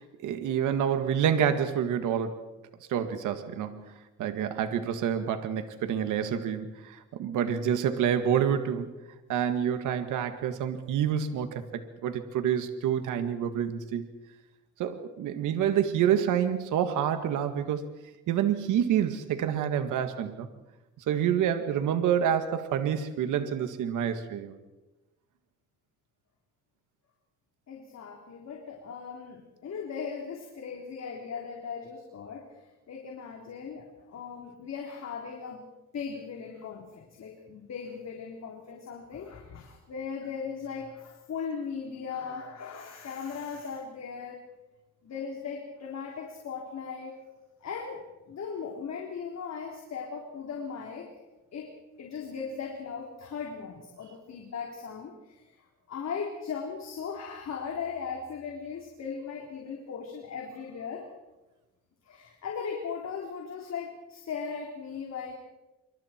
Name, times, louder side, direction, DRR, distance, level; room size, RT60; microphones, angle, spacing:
voice 1, 0.0-2.4 2.9-3.8 4.2-8.9 9.3-14.1 14.8-17.8 18.3-20.5 21.1-24.6, right 9 dB, 85° right, 8 dB, 1.9 m, -28 dB
voice 2, 27.7-35.6 35.9-44.4 45.0-47.2 47.6-48.0 48.3-51.1 51.5-51.7 52.0-61.1 62.0-65.3, left 6 dB, 60° left, 0 dB, 3.9 m, -38 dB
27.0 x 25.0 x 4.5 m, 1.1 s
cardioid pair, 90°, 30 cm